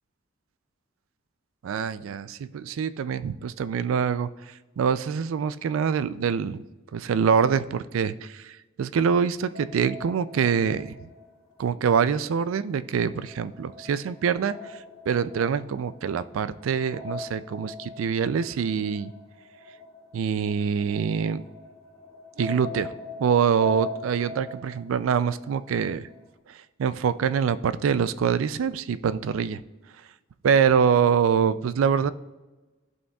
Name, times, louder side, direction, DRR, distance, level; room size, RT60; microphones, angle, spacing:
voice 1, 1.6-6.6 6.9-11.0 11.6-14.8 15.1-19.1 20.1-21.4 22.4-22.9 23.2-26.1 26.5-29.6 30.4-32.1, right 7 dB, 90° right, 15 dB, 0.3 m, -25 dB
sound 1, 9.5-12.1 12.4-26.2, left 2 dB, 75° right, 1.7 m, -42 dB
14.0 x 5.5 x 2.3 m, 1.2 s
head